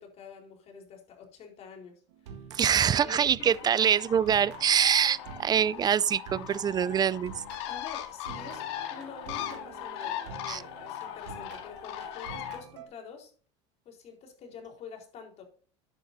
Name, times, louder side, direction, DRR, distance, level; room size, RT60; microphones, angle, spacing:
voice 1, 0.0-2.5 3.0-3.6 7.7-13.3 13.8-15.4, left 6 dB, 50° left, 4.3 m, -47 dB
sound 1, 2.1-4.0 4.3-7.9 8.3-12.9, right 6 dB, 85° right, 1.7 m, -47 dB
voice 2, 2.5-7.4 10.5-10.6, right 8 dB, 30° right, 0.5 m, -25 dB
Bird, 3.4-12.6, left 11 dB, 75° left, 2.1 m, -39 dB
11.0 x 9.2 x 2.7 m
supercardioid pair, 95°, 14 cm